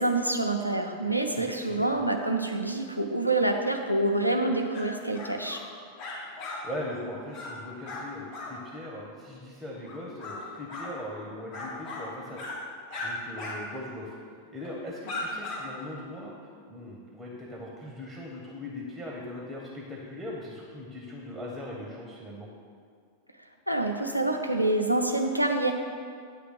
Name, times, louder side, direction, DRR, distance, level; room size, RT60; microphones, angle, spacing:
voice 1, 0.0-5.6 23.7-25.7, right 2 dB, 90° right, 3 dB, 0.6 m, -27 dB
voice 2, 1.4-2.0 6.6-12.4 13.0-14.2 14.5-16.3 16.7-22.5, left 1 dB, 5° right, -3 dB, 1.2 m, -40 dB
sound 1, 4.7-4.8 5.1-5.6 6.0-6.6 6.9-7.0 7.3-7.5 7.8-8.0 8.3-8.5 9.8-10.4 10.7-10.9 11.5-12.1 12.3-12.6 12.9-13.1 13.4-13.6 13.9-14.0 14.6-14.8 15.1-15.6, left 3 dB, 45° left, 2.1 m, -37 dB
9.7 x 3.3 x 6.5 m, 2.1 s
figure-of-eight pair, 90°, 0 cm